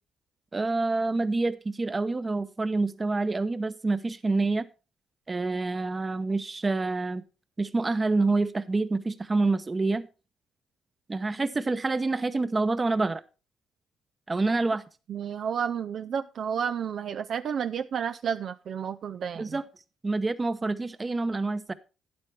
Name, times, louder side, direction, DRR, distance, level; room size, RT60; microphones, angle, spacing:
voice 1, 0.5-4.7 5.3-7.2 7.6-10.1 11.1-13.2 14.3-14.8 19.4-19.7 20.0-21.7, right 3 dB, 25° right, 12 dB, 0.9 m, -27 dB
voice 2, 15.1-19.6, right 7 dB, 60° right, 9 dB, 0.4 m, -31 dB
12.0 x 9.6 x 3.3 m, 0.32 s
cardioid pair, 90°, 0 cm